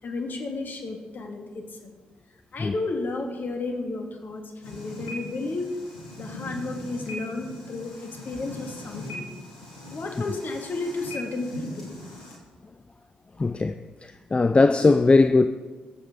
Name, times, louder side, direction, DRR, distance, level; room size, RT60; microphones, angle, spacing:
voice 1, 0.0-1.9 2.5-5.8 6.2-9.2 9.9-11.9, left 3 dB, 50° left, 2.3 m, -32 dB
sound 1, 4.6-12.4, left 1 dB, 90° left, 2.1 m, -40 dB
voice 2, 13.4-13.7 14.3-15.5, left 3 dB, 25° left, 0.6 m, -18 dB
22.0 x 7.6 x 3.9 m
hypercardioid pair, 40°, 4 cm